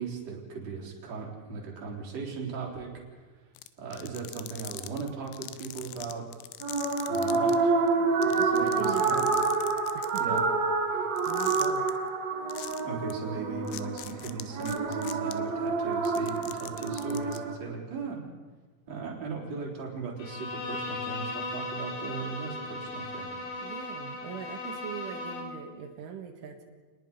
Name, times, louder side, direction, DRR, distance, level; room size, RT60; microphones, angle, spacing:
voice 1, 0.0-3.0 3.3-3.4 3.8-6.3 7.1-7.7 8.2-9.3 10.2-10.4 12.8-18.2 18.9-23.3, right 5 dB, 35° right, -2 dB, 4.4 m, -38 dB
sound 1, 3.6-7.5 7.9-8.0 8.2-10.4 11.2-11.9 12.5-12.8 13.1-13.2 13.7-15.3 15.9-17.4, left 15 dB, 85° left, 3.3 m, -42 dB
sound 2, 6.6-17.5, right 4 dB, 50° right, 2.1 m, -28 dB
voice 2, 8.0-9.3 10.0-10.2 10.9-11.9 23.6-26.6, right 8 dB, 85° right, 3 dB, 4.1 m, -40 dB
Bowed string instrument, 20.2-25.6, left 2 dB, 65° left, 5.2 m, -37 dB
28.0 x 20.0 x 5.4 m, 1.4 s
omnidirectional pair, 5.5 m